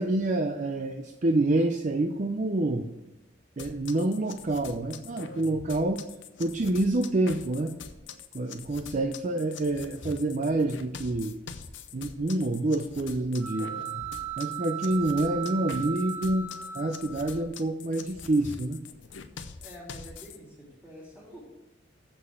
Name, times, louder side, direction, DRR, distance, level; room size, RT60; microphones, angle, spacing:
voice 1, 0.0-2.9 3.6-6.0 6.4-7.7 8.3-11.5 11.9-13.7 14.4-18.8, right 2 dB, 40° right, 6 dB, 0.5 m, -27 dB
sound 1, 3.6-20.4, left 5 dB, 70° left, 0.7 m, -44 dB
sound 2, 13.4-17.5, right 9 dB, 80° right, 1.6 m, -36 dB
voice 2, 19.6-21.6, equal, 5° right, -5 dB, 2.9 m, -47 dB
7.7 x 6.0 x 7.5 m, 0.90 s
head